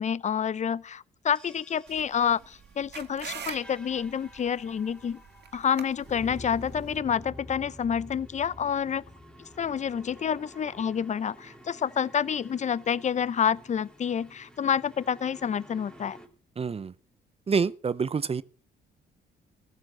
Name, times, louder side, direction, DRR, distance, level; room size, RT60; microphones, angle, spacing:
voice 1, 0.0-5.2 5.5-9.0 9.6-16.2, left 8 dB, 35° left, 0.5 m, -28 dB
sound 1, 1.4-16.3, equal, 5° left, 2.9 m, -49 dB
sound 2, 1.9-7.0, right 8 dB, 55° right, 2.0 m, -44 dB
voice 2, 16.6-16.9 17.5-18.4, right 5 dB, 30° right, 0.6 m, -27 dB
14.5 x 8.4 x 7.7 m
cardioid pair, 90°, 20 cm